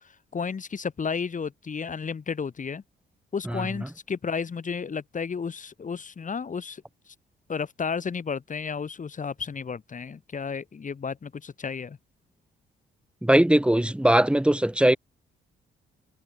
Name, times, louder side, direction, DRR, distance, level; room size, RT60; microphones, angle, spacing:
voice 1, 0.0-2.8 3.3-6.8 7.1-7.2 7.5-12.0, left 6 dB, 40° left, 7.3 m, -32 dB
voice 2, 13.2-15.0, right 1 dB, 5° right, 2.3 m, -20 dB
cardioid pair, 90°, 20 cm